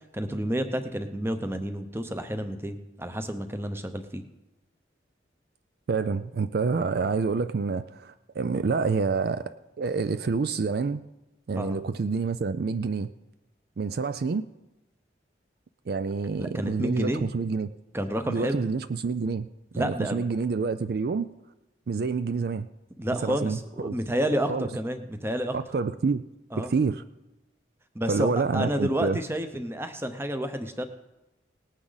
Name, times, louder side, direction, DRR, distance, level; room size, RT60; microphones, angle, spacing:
voice 1, 0.1-4.2 11.6-11.8 16.4-17.3 17.9-18.6 19.7-20.2 23.0-25.6 26.5-26.7 27.9-30.9, equal, 15° right, 8 dB, 0.8 m, -30 dB
voice 2, 5.9-11.0 11.5-13.1 13.8-14.4 15.9-17.7 18.3-19.5 19.8-21.3 21.9-22.7 23.2-24.0 24.5-24.7 25.5-26.2 26.6-27.0 28.1-29.2, right 4 dB, 55° right, 12 dB, 0.4 m, -28 dB
18.5 x 9.7 x 4.0 m, 1.0 s
head